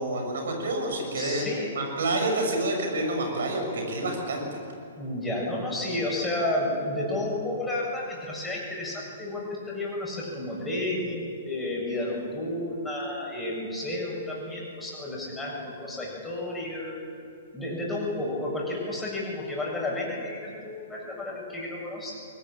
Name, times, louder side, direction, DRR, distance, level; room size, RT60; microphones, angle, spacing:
voice 1, 0.0-1.5 1.7-4.6, right 2 dB, 60° right, 2 dB, 6.8 m, -28 dB
voice 2, 1.2-1.7 5.0-17.0 17.5-22.2, left 1 dB, 5° left, -3 dB, 7.5 m, -31 dB
23.0 x 19.5 x 8.9 m, 2.6 s
figure-of-eight pair, 115°, 0 cm